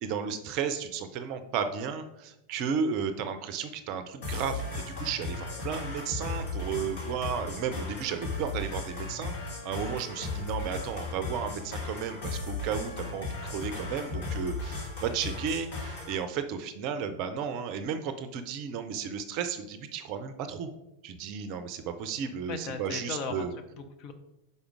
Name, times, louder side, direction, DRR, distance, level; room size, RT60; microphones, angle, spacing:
voice 1, 0.0-9.4 9.6-20.7 21.0-23.5, right 7 dB, 40° right, 10 dB, 0.5 m, -33 dB
sound 1, 4.2-16.2, left 3 dB, 55° left, 2.0 m, -36 dB
voice 2, 22.5-24.1, left 4 dB, 40° left, 6 dB, 0.6 m, -37 dB
5.4 x 5.0 x 4.6 m, 0.89 s
figure-of-eight pair, 90°, 0 cm